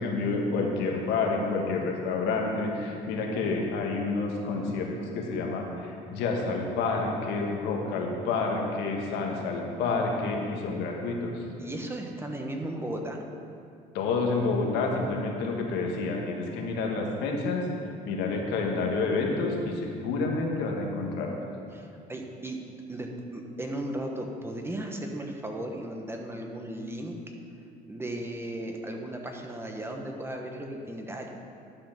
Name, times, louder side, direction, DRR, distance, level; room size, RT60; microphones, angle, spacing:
voice 1, 0.0-11.4 13.9-17.7 18.0-21.4, left 3 dB, 90° left, 0 dB, 1.5 m, -29 dB
voice 2, 11.6-13.2 21.7-22.6 22.9-27.1 27.9-31.3, right 1 dB, 15° right, 2 dB, 1.1 m, -36 dB
11.5 x 5.1 x 5.9 m, 2.5 s
cardioid pair, 110°, 17 cm